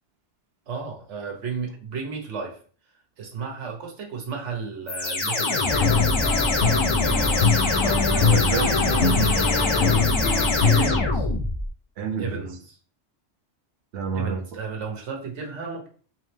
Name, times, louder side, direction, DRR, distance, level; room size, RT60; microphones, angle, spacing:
voice 1, 0.7-2.6 3.2-6.0 10.8-11.2 12.2-12.8 14.1-15.9, right 5 dB, 90° right, 1 dB, 1.3 m, -34 dB
sound 1, 4.9-11.7, left 3 dB, 40° left, 0.4 m, -23 dB
sound 2, 5.7-11.0, left 5 dB, 80° left, 0.9 m, -24 dB
voice 2, 7.8-10.1 10.6-11.0 12.0-12.4 13.9-14.4, right 6 dB, 65° right, 3 dB, 0.8 m, -30 dB
3.6 x 3.1 x 3.3 m, 0.43 s
omnidirectional pair, 1.2 m